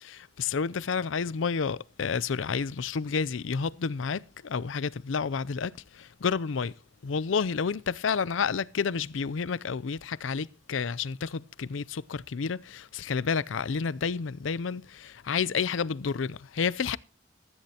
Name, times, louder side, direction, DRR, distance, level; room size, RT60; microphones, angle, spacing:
voice 1, 0.0-6.7 7.0-17.0, left 5 dB, 85° left, 0.5 m, -30 dB
15.5 x 13.5 x 2.8 m
head